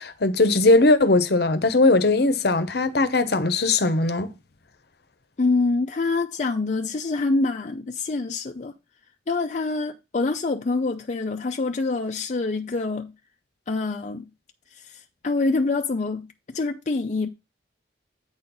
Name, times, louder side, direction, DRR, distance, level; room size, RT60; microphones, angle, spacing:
voice 1, 0.0-4.3, left 2 dB, 65° left, 0.9 m, -19 dB
voice 2, 5.4-8.7 9.3-13.1 13.7-14.3 14.7-17.3, left 3 dB, 40° left, 0.5 m, -26 dB
8.7 x 4.4 x 5.3 m
head